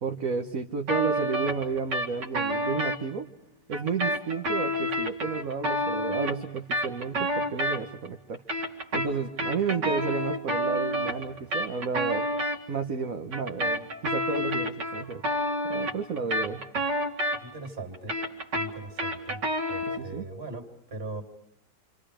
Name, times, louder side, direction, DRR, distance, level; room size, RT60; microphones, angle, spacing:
voice 1, 0.0-3.3 3.7-8.4 8.9-12.3 12.7-15.2 15.7-16.6 19.9-20.3, right 5 dB, 55° right, 3 dB, 1.6 m, -32 dB
sound 1, 0.9-3.0 3.7-8.1 8.3-12.6 13.3-17.7 17.9-20.1, equal, 80° right, 2.9 m, -29 dB
voice 2, 17.4-18.2 18.5-19.4 19.7-21.2, right 2 dB, 35° right, 2 dB, 3.5 m, -40 dB
29.0 x 27.0 x 5.1 m, 0.76 s
omnidirectional pair, 1.8 m